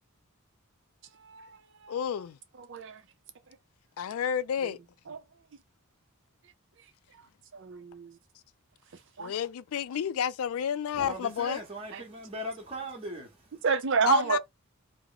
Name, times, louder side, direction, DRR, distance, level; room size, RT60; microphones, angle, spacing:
voice 1, 1.2-1.6 1.8-1.9 2.6-3.0 5.1-5.2 7.5-8.2 9.2-9.3 11.9-12.0 13.6-14.4, right 5 dB, 60° right, 0.5 m, -28 dB
voice 2, 1.9-2.4 4.0-4.8 9.2-11.6 14.0-14.4, left 8 dB, 80° left, 0.3 m, -30 dB
voice 3, 10.9-13.6, right 1 dB, 25° right, 1.0 m, -39 dB
3.0 x 2.1 x 3.7 m
head